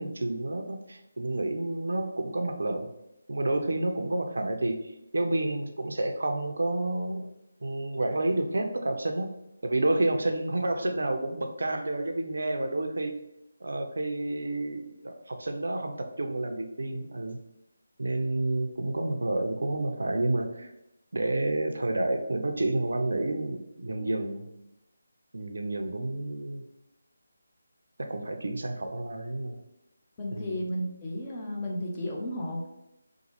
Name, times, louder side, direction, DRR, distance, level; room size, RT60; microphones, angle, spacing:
voice 1, 0.0-2.9 3.3-7.3 7.6-9.4 9.6-13.1 13.6-17.4 18.0-20.7 21.1-24.5 25.3-26.6 28.1-29.6 30.3-30.6, right 2 dB, 75° right, 5 dB, 0.4 m, -30 dB
voice 2, 30.2-32.7, equal, 25° left, -2 dB, 0.5 m, -33 dB
3.0 x 2.0 x 2.9 m, 0.87 s
figure-of-eight pair, 160°, 0 cm